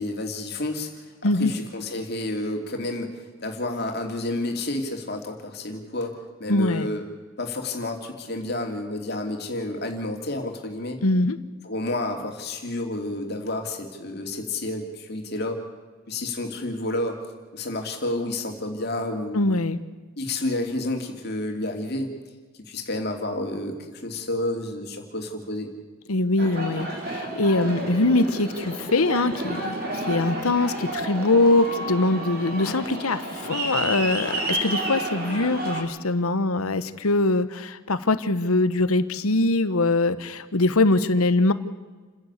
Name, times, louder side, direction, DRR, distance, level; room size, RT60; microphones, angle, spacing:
voice 1, 0.0-7.0 7.4-11.0 11.6-15.6 16.1-17.2 17.5-19.6 20.2-22.1 22.7-25.7, left 2 dB, 45° left, 3 dB, 2.9 m, -30 dB
voice 2, 6.5-6.9 11.0-11.4 19.3-19.8 26.1-41.5, left 2 dB, 85° left, 13 dB, 1.1 m, -22 dB
Aircraft, 26.4-35.8, right 1 dB, 45° right, 3.8 m, -31 dB
29.0 x 11.0 x 8.3 m, 1.4 s
head